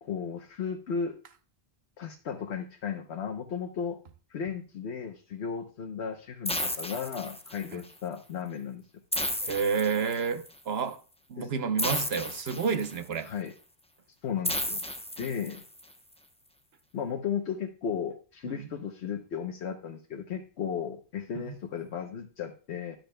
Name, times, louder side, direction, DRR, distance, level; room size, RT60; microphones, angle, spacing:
voice 1, 0.0-1.2 2.0-4.0 4.3-8.8 11.4-11.5 13.2-13.5 14.2-14.8 15.2-15.6 16.9-23.0, left 7 dB, 85° left, 1.1 m, -35 dB
sound 1, 6.4-7.8 9.1-10.5 11.8-13.1 14.4-15.8, left 1 dB, 5° left, 0.6 m, -33 dB
voice 2, 9.4-11.0 11.3-13.3 15.2-15.3 18.5-18.7 21.3-21.6, right 6 dB, 70° right, 1.1 m, -30 dB
13.0 x 10.5 x 2.2 m
omnidirectional pair, 1.1 m